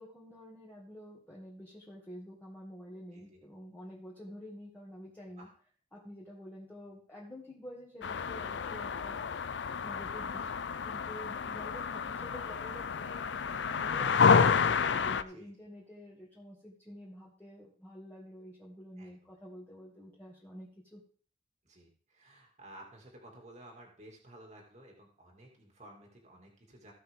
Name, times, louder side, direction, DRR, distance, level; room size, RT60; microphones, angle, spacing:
voice 1, 0.0-5.5 5.9-13.3 13.7-21.0, equal, 10° left, -5 dB, 2.0 m, -49 dB
sound 1, 8.0-15.2, left 6 dB, 75° left, 0.5 m, -29 dB
voice 2, 13.4-13.8 15.3-15.5 19.0-19.1 21.6-26.9, right 1 dB, 40° right, 0 dB, 2.3 m, -54 dB
16.5 x 5.7 x 3.6 m, 0.43 s
head